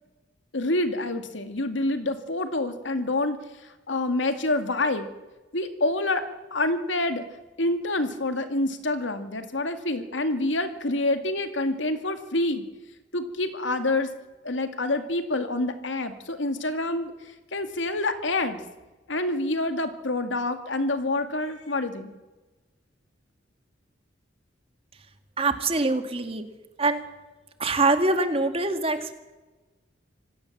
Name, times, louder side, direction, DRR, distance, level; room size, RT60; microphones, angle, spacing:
voice 1, 0.5-3.4 3.6-5.1 5.5-6.2 6.5-7.3 7.6-12.7 13.1-14.1 14.4-17.1 17.5-18.6 19.1-22.1, left 2 dB, 85° left, 8 dB, 2.2 m, -27 dB
voice 2, 25.4-26.4 26.8-27.0 27.6-29.1, right 3 dB, 30° right, 8 dB, 2.1 m, -24 dB
26.5 x 17.5 x 7.4 m, 1.2 s
head